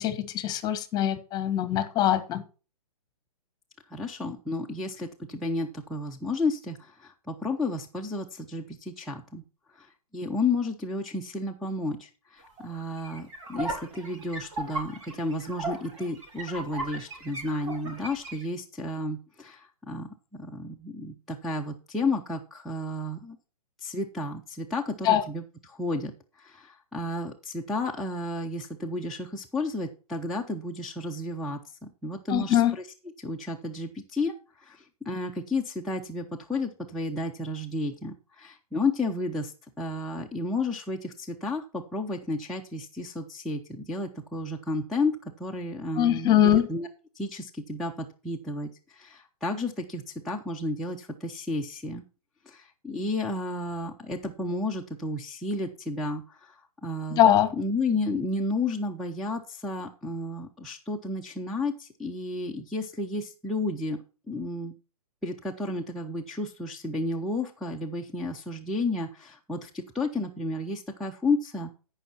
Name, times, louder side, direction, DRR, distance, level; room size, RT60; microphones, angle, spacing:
voice 1, 0.0-2.4 25.0-25.2 32.3-32.7 45.9-46.7 57.1-57.5, left 11 dB, 20° left, 1.3 m, -22 dB
voice 2, 3.9-9.4 9.7-9.9 10.1-23.4 23.8-32.8 33.2-46.9 47.1-52.0 52.5-57.2 57.6-64.0 64.3-64.7 65.2-71.7, left 2 dB, ahead, 0.8 m, -32 dB
sound 1, 12.4-18.4, right 2 dB, 50° right, 4.9 m, -37 dB
14.5 x 5.6 x 4.3 m
hypercardioid pair, 135°, 19 cm